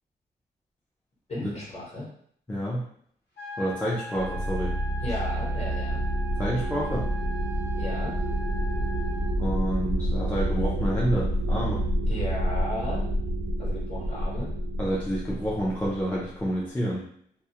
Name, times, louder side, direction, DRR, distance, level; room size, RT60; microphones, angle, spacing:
voice 1, 1.3-2.1 5.0-6.0 7.7-8.1 12.1-13.0 13.6-14.5, left 1 dB, 40° left, -5 dB, 0.9 m, -35 dB
voice 2, 2.5-2.8 3.6-4.8 6.4-7.1 9.4-11.8 14.8-17.0, equal, 10° left, -7 dB, 0.3 m, -28 dB
sound 1, 3.4-9.4, equal, 75° left, 0.8 m, -40 dB
sound 2, 4.1-16.4, right 1 dB, 60° right, 0.4 m, -28 dB
2.3 x 2.0 x 2.8 m, 0.63 s
wide cardioid pair, 175°, 18 cm